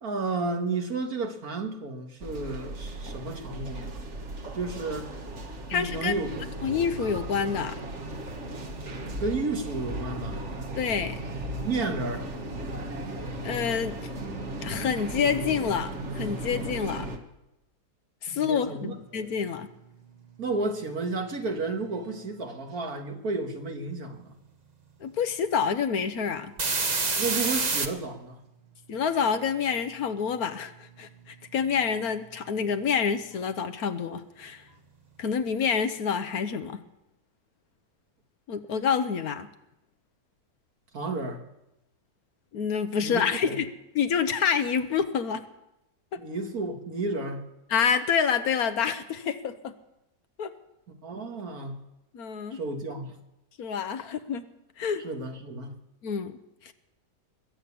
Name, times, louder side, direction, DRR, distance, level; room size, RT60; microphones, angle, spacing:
voice 1, 0.0-4.0 4.5-5.1 5.7-6.5 9.2-10.4 11.6-12.3 18.3-18.9 20.4-24.4 27.2-28.4 40.9-41.4 43.0-43.6 46.2-47.5 51.0-51.8 52.5-53.2 55.0-55.8, right 3 dB, 65° right, 4 dB, 2.1 m, -32 dB
sound 1, 2.2-17.2, right 1 dB, 45° right, 1.7 m, -36 dB
voice 2, 5.7-6.1 6.6-7.8 10.8-11.2 13.4-14.0 14.6-17.1 18.2-19.7 25.0-26.5 28.9-34.7 35.2-36.8 38.5-39.5 42.5-43.7 43.9-45.4 46.1-46.2 47.7-49.7 50.4-50.5 52.1-52.6 53.6-54.5 54.8-55.0 56.0-56.3 56.6-56.7, left 6 dB, 70° left, 10 dB, 1.3 m, -27 dB
sound 2, 19.2-19.3 20.0-22.2 26.6-27.9 30.3-32.5 32.8-32.9, right 4 dB, 30° right, 1.0 m, -30 dB
21.5 x 7.2 x 8.4 m, 0.90 s
omnidirectional pair, 1.7 m